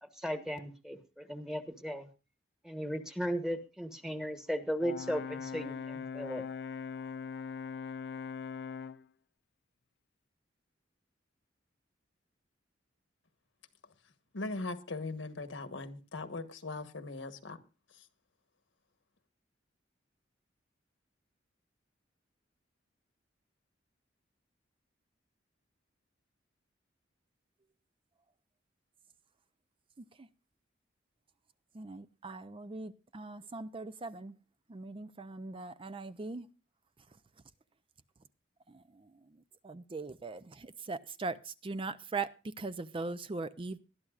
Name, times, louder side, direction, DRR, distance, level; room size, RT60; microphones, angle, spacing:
voice 1, 0.0-2.1 2.6-6.5, equal, 5° right, 1.3 m, -36 dB
Brass instrument, 4.8-9.0, left 6 dB, 60° left, 0.5 m, -41 dB
voice 2, 14.3-17.6 18.0-18.1, left 3 dB, 80° left, 1.4 m, -40 dB
voice 3, 31.7-34.3 34.7-36.5 38.7-38.8 39.6-43.8, right 3 dB, 30° right, 0.5 m, -40 dB
20.5 x 12.0 x 2.4 m
head